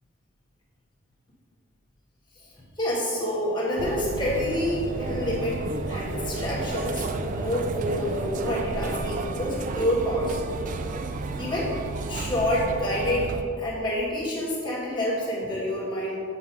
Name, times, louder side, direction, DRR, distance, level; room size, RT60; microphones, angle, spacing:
voice 1, 2.8-5.6 5.9-10.4 11.4-11.8 12.1-13.3 13.6-16.2, left 1 dB, 25° left, -7 dB, 1.6 m, -28 dB
sound 1, 3.8-13.4, right 3 dB, 40° right, 0.3 m, -31 dB
7.4 x 2.9 x 6.0 m, 2.4 s
head